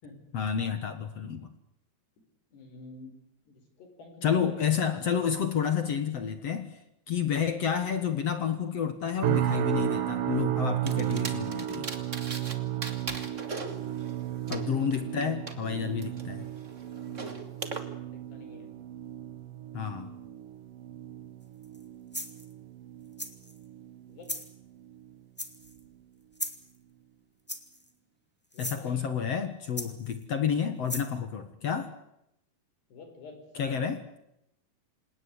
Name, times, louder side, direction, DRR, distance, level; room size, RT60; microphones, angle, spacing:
voice 1, 0.3-1.5 4.2-6.8 7.1-11.9 14.5-16.5 19.7-20.1 28.6-31.9 33.5-34.0, left 7 dB, 55° left, 10 dB, 1.9 m, -30 dB
voice 2, 2.5-3.1 3.5-4.5 17.0-17.4 18.1-18.7 24.1-24.3 28.5-29.1 32.9-33.8, left 3 dB, 80° left, 4 dB, 7.3 m, -48 dB
sound 1, 9.2-24.4 24.8-25.2 25.7-25.9, right 12 dB, 65° right, 2.7 m, -34 dB
sound 2, 10.9-12.5 12.8-15.5 16.0-17.8, right 3 dB, 30° right, 1.5 m, -39 dB
sound 3, 21.6-21.8 22.1-22.5 23.2-23.6 24.2-24.5 25.4-25.8 26.3-26.7 27.5-27.9 28.5-28.8 29.8-30.2 30.9-31.1, left 1 dB, 10° left, 0.6 m, -37 dB
27.5 x 18.5 x 9.8 m, 0.81 s
omnidirectional pair, 4.7 m